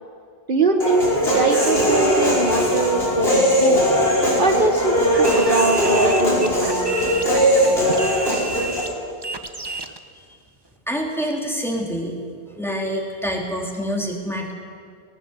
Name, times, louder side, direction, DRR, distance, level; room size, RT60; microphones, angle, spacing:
voice 1, 0.5-3.9 4.4-6.8, right 3 dB, 50° right, 4 dB, 1.3 m, -22 dB
Human voice, 0.8-8.8, equal, 65° left, 5.8 m, -19 dB
sound 1, 5.1-10.0, right 2 dB, 25° right, 1.0 m, -31 dB
voice 2, 10.9-12.1 12.6-14.5, equal, ahead, -1 dB, 3.0 m, -26 dB
18.5 x 18.5 x 8.1 m, 2.2 s
omnidirectional pair, 1.1 m